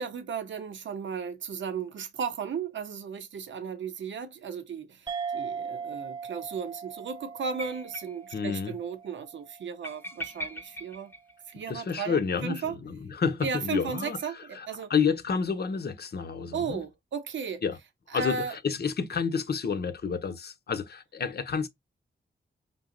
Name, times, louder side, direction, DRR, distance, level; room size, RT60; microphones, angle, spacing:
voice 1, 0.0-11.1 11.5-12.7 13.4-14.3 14.7-14.9 16.5-17.6 18.1-18.5, right 6 dB, 75° right, 0.8 m, -35 dB
sound 1, 5.1-10.0, right 6 dB, 25° right, 0.4 m, -39 dB
sound 2, 7.6-8.4 8.7-8.8 9.0-9.1 9.8-11.9 13.4-14.6, equal, 10° left, 0.7 m, -41 dB
voice 2, 8.3-8.8 11.7-16.8 17.6-17.8 18.1-21.7, left 6 dB, 55° left, 0.7 m, -30 dB
5.3 x 2.0 x 3.7 m
supercardioid pair, 40°, 19 cm